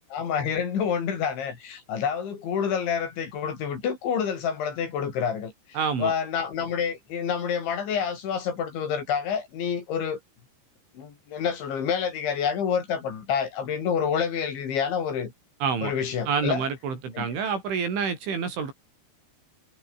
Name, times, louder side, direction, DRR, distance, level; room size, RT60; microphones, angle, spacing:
voice 1, 0.1-5.5 6.0-10.2 10.9-15.3 15.8-16.7 17.1-17.3, left 7 dB, 75° left, 6.7 m, -28 dB
voice 2, 5.8-6.1 15.6-15.9 16.3-18.7, right 6 dB, 90° right, 8.3 m, -28 dB
omnidirectional pair, 5.3 m